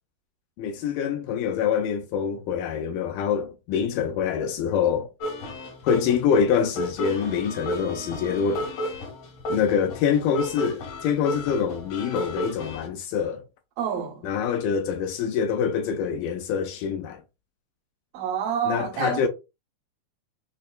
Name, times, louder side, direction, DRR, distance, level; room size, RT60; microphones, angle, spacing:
voice 1, 0.6-5.1 5.8-8.7 9.5-13.4 14.2-17.2 18.7-19.3, left 7 dB, 80° left, 2.0 m, -25 dB
sound 1, 5.2-12.9, equal, 65° left, 1.7 m, -33 dB
voice 2, 13.8-14.3 18.1-19.3, right 8 dB, 75° right, 3.1 m, -28 dB
6.3 x 2.1 x 2.3 m
omnidirectional pair, 4.1 m